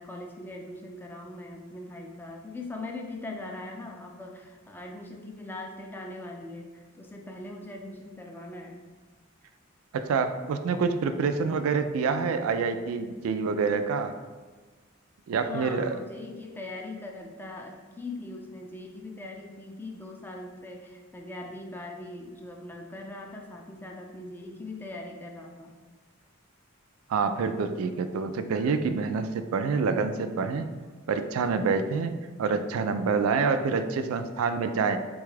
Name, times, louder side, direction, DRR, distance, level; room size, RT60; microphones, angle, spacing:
voice 1, 0.0-8.8 15.3-25.7, left 2 dB, 10° left, 1 dB, 0.3 m, -41 dB
voice 2, 9.9-14.1 15.3-16.0 27.1-30.7 31.1-32.1 32.4-35.0, right 5 dB, 90° right, 9 dB, 0.3 m, -27 dB
4.2 x 2.3 x 3.2 m, 1.4 s
head